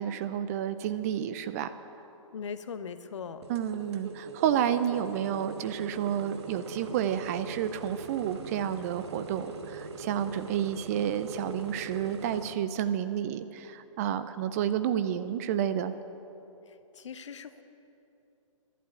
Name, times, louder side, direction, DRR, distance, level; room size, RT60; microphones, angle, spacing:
voice 1, 0.0-1.8 3.5-15.9, right 9 dB, 30° right, 12 dB, 0.5 m, -30 dB
voice 2, 2.3-3.4 16.7-17.6, left 6 dB, 60° left, 11 dB, 0.9 m, -40 dB
sound 1, 3.4-12.5, right 4 dB, 55° right, 1.2 m, -42 dB
11.5 x 11.0 x 8.4 m, 2.9 s
figure-of-eight pair, 130°, 17 cm